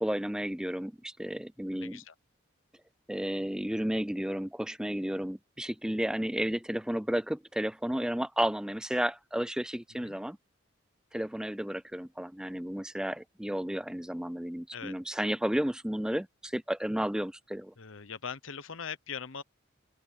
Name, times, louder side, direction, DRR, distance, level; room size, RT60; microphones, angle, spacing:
voice 1, 0.0-2.0 3.1-10.4 11.1-17.7, equal, 5° right, 0.4 m, -32 dB
voice 2, 1.7-2.1 9.9-10.2 14.7-14.9 17.8-19.4, left 6 dB, 70° left, 1.0 m, -41 dB
open air
head